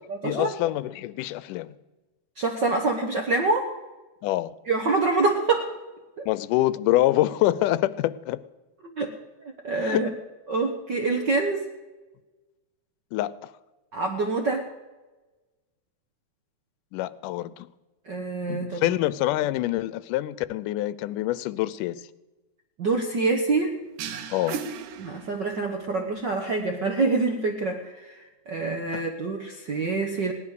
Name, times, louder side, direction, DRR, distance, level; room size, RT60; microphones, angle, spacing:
voice 1, 0.2-1.7 4.2-4.5 6.3-8.4 9.7-10.1 13.1-13.3 16.9-17.7 18.5-22.0 24.3-24.6 28.9-29.0, left 15 dB, 90° left, 2.2 m, -26 dB
voice 2, 2.4-3.7 4.7-5.7 6.2-6.3 9.0-9.1 9.4-10.1 10.5-11.6 13.9-14.7 18.1-18.8 22.8-23.7 25.0-30.3, right 3 dB, 60° right, 1.1 m, -26 dB
sound 1, 24.0-25.8, right 7 dB, 85° right, 2.5 m, -36 dB
17.5 x 11.0 x 6.5 m
omnidirectional pair, 3.6 m